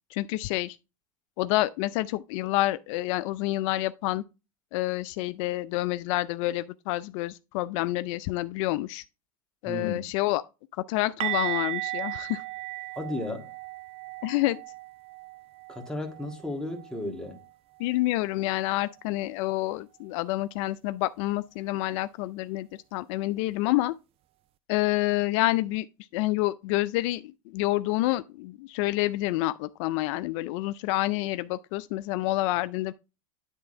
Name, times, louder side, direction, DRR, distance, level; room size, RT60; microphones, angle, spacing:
voice 1, 0.1-0.8 1.4-4.2 4.7-9.0 9.6-10.4 10.7-12.4 14.2-14.6 17.8-23.9 24.7-25.9 26.1-32.9, left 17 dB, 60° left, 0.4 m, -28 dB
voice 2, 9.7-10.1 12.9-13.5 15.7-17.4, left 2 dB, 5° left, 1.7 m, -34 dB
sound 1, 11.2-17.0 17.2-17.5 17.8-18.0 21.2-21.3, right 20 dB, 35° right, 0.4 m, -36 dB
10.0 x 3.4 x 4.3 m
supercardioid pair, 120°, 18 cm